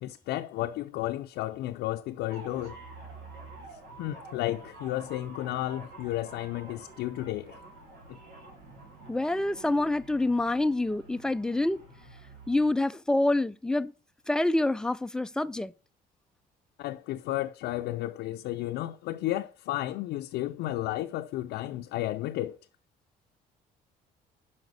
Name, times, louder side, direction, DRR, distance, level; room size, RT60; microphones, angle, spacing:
voice 1, 0.0-2.7 4.0-7.6 16.8-22.6, left 15 dB, 80° left, 0.5 m, -33 dB
sound 1, 2.3-12.7, right 2 dB, 80° right, 3.0 m, -48 dB
voice 2, 9.1-11.8 12.5-13.9 14.3-15.7, left 2 dB, 5° left, 0.4 m, -27 dB
5.8 x 5.3 x 6.1 m
cardioid pair, 110°, 17 cm